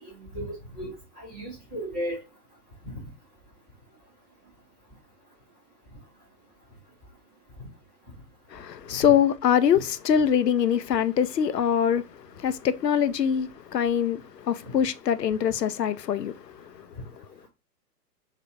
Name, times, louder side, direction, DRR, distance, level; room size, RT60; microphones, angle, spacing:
voice 1, 0.0-2.2, equal, 5° right, 0.4 m, -35 dB
voice 2, 8.5-16.9, left 8 dB, 80° left, 0.5 m, -24 dB
3.3 x 2.8 x 3.5 m
figure-of-eight pair, 115°, 49 cm